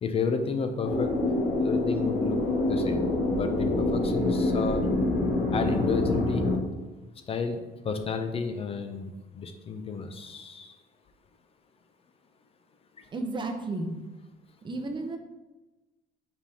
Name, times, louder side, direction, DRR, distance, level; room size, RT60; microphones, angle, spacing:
voice 1, 0.0-1.1 1.6-2.4 2.7-3.0 3.3-4.8 5.5-6.4 7.3-7.6 7.8-10.7, left 5 dB, 35° left, 7 dB, 0.4 m, -31 dB
sound 1, 0.8-6.6, left 2 dB, 75° left, 0.9 m, -26 dB
voice 2, 13.1-14.0 14.6-15.2, right 2 dB, 30° right, 4 dB, 0.6 m, -32 dB
5.2 x 3.4 x 2.7 m, 1.1 s
cardioid pair, 110°, 17 cm